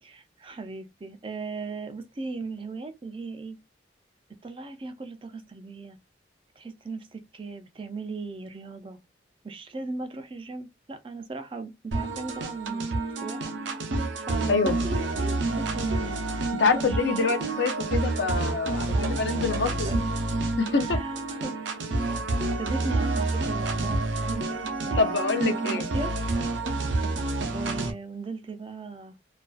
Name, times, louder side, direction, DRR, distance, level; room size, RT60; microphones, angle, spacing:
voice 1, 0.0-3.6 4.4-6.0 6.6-9.0 9.4-16.2 16.6-17.4 18.9-20.0 20.7-21.6 22.6-26.3 27.5-29.2, right 3 dB, 30° right, 0.3 m, -38 dB
sound 1, 11.9-27.9, right 2 dB, 85° right, 0.6 m, -28 dB
voice 2, 16.5-19.9 20.6-21.0 25.0-25.9, left 4 dB, 70° left, 0.6 m, -26 dB
2.4 x 2.2 x 2.3 m
head